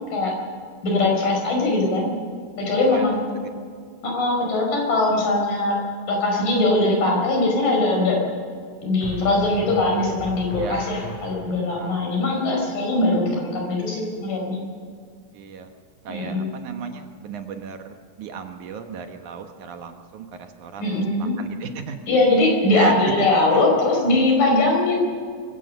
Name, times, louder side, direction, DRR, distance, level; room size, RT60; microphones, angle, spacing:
voice 1, 0.8-2.1 2.6-3.2 4.0-5.8 6.1-8.2 8.8-14.6 16.1-16.5 20.8-21.4 22.1-25.0, left 2 dB, 70° left, 0 dB, 6.7 m, -21 dB
voice 2, 2.9-3.2 3.4-3.5 10.6-10.8 11.7-12.1 15.3-15.7 16.0-17.8 18.2-20.9 21.2-22.0 22.7-22.9 23.5-23.8, right 7 dB, 65° right, 5 dB, 2.4 m, -35 dB
Effect Drum, 6.4-6.9 9.0-11.7, equal, 45° left, 8.4 m, -37 dB
24.5 x 16.5 x 6.7 m, 2.1 s
omnidirectional pair, 4.0 m